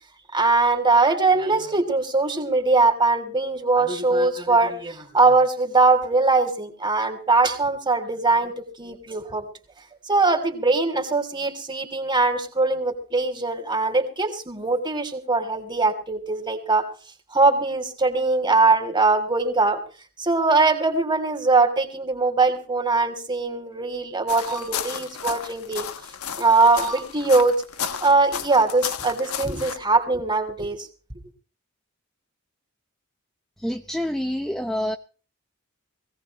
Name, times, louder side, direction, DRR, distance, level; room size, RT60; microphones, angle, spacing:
voice 1, 0.3-8.5 8.8-9.5 10.1-16.9 17.3-19.8 20.2-25.9 26.4-27.5 28.0-30.9, right 3 dB, 20° right, 5 dB, 3.0 m, -21 dB
sound 1, 24.3-29.8, left 8 dB, 75° left, 1.3 m, -33 dB
voice 2, 33.6-35.0, left 1 dB, ahead, 5 dB, 0.7 m, -27 dB
21.0 x 17.0 x 3.1 m, 0.39 s
head